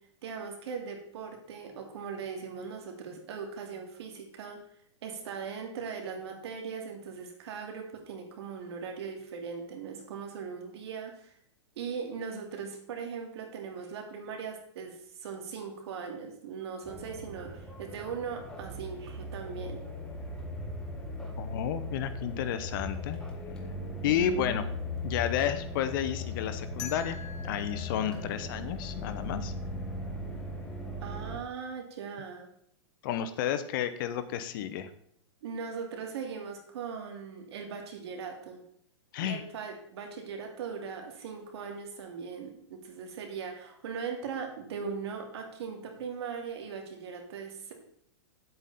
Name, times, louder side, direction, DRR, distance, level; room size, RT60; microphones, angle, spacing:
voice 1, 0.2-4.6 5.0-11.3 11.8-19.8 24.1-24.5 31.0-32.5 35.4-38.6 39.2-47.7, right 6 dB, 60° right, 3 dB, 2.5 m, -39 dB
sound 1, 16.8-31.4, left 2 dB, 5° left, 1.3 m, -38 dB
voice 2, 21.4-23.2 24.0-24.6 25.0-27.2 27.4-29.5 33.0-34.9 39.1-39.4, left 9 dB, 45° left, 11 dB, 0.8 m, -31 dB
sound 2, 26.8-29.7, left 7 dB, 75° left, 2.6 m, -46 dB
9.1 x 8.0 x 4.1 m, 0.67 s
hypercardioid pair, 150°, 15 cm